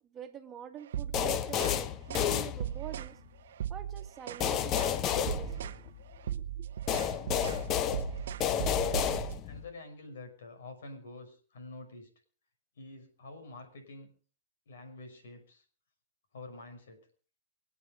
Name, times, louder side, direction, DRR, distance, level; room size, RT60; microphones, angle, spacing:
voice 1, 0.1-3.2 3.7-5.9 6.3-6.7, right 9 dB, 20° right, 5 dB, 1.9 m, -46 dB
sound 1, 0.9-1.8 2.1-2.3 2.6-3.1 3.5-4.5 4.8-5.0 5.3-5.8 6.1-9.4, right 10 dB, 70° right, 0.9 m, -37 dB
sound 2, 1.1-3.1 4.4-6.2 6.9-9.7, left 9 dB, 30° left, 0.8 m, -31 dB
voice 2, 9.4-12.1 12.8-14.1 14.7-15.6 16.3-17.1, left 2 dB, 75° left, 6 dB, 5.9 m, -47 dB
25.0 x 8.5 x 5.3 m, 0.42 s
hypercardioid pair, 145°, 0 cm